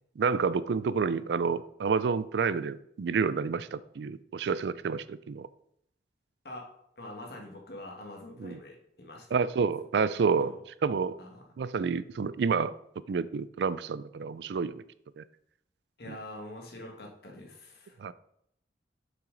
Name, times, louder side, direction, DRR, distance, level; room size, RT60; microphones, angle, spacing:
voice 1, 0.2-5.5 8.4-8.6 9.3-10.5 10.8-11.2 11.6-12.7 13.1-14.8 15.2-15.3 16.1-16.2 18.0-18.1, right 5 dB, 70° right, 16 dB, 0.4 m, -29 dB
voice 2, 7.0-9.4 10.4-10.6 11.2-11.4 16.0-18.0, left 1 dB, 60° left, 1 dB, 1.7 m, -45 dB
6.9 x 5.9 x 3.9 m, 0.72 s
head